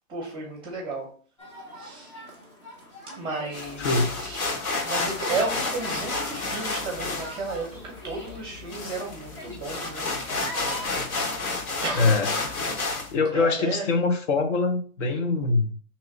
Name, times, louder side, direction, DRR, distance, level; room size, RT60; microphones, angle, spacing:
voice 1, 0.1-1.1 1.7-2.1 3.2-4.5 4.8-10.1 11.8-12.1 13.3-13.9, right 3 dB, 10° right, 0 dB, 0.7 m, -33 dB
sound 1, 1.4-10.9, equal, 20° left, 0.4 m, -42 dB
sound 2, 3.5-13.1, left 3 dB, 70° left, 1.3 m, -31 dB
voice 2, 3.8-4.2 12.0-12.3 13.1-15.8, left 3 dB, 55° left, 6 dB, 0.7 m, -23 dB
3.2 x 3.0 x 3.8 m, 0.43 s
hypercardioid pair, 145°, 44 cm